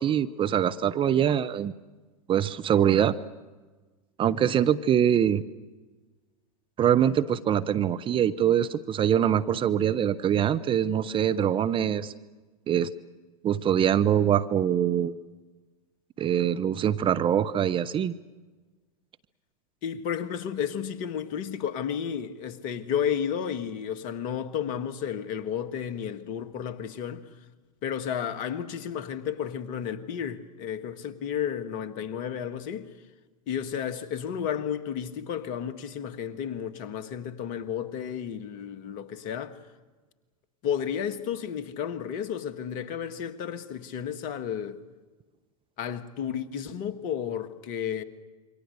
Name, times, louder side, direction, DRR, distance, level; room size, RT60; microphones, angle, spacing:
voice 1, 0.0-1.7 2.3-3.2 4.2-5.4 6.8-12.1 12.7-12.9 13.4-15.2 16.2-18.1, right 9 dB, 25° right, 0.8 m, -23 dB
voice 2, 19.8-27.2 27.8-32.9 33.5-39.6 40.6-44.8 45.8-48.0, left 8 dB, 45° left, 1.7 m, -32 dB
27.5 x 23.5 x 6.6 m
hypercardioid pair, 95°, 19 cm